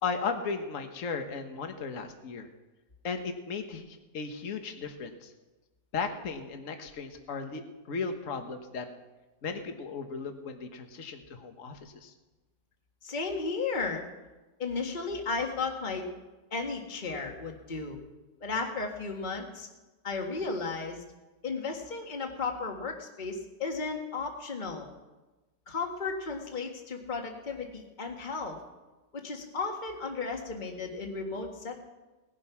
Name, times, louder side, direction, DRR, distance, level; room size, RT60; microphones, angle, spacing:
voice 1, 0.0-2.5 3.0-5.3 5.9-8.9 9.4-12.1, left 5 dB, 50° left, 6 dB, 1.6 m, -36 dB
voice 2, 13.0-14.0 14.6-16.1 16.5-18.0 18.4-19.7 20.0-21.0 21.4-24.9 25.7-28.6 29.1-31.8, left 4 dB, 25° left, 2 dB, 1.8 m, -34 dB
19.0 x 11.0 x 5.8 m, 1.1 s
omnidirectional pair, 2.0 m